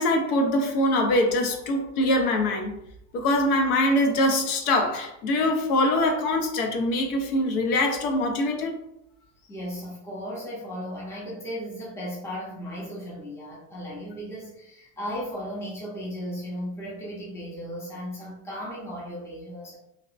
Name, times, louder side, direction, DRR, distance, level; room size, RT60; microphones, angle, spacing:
voice 1, 0.0-2.7 3.1-8.8, left 1 dB, 90° left, 3 dB, 0.7 m, -23 dB
voice 2, 9.5-19.8, equal, 5° left, -6 dB, 0.5 m, -36 dB
2.8 x 2.0 x 2.4 m, 0.79 s
supercardioid pair, 140°, 43 cm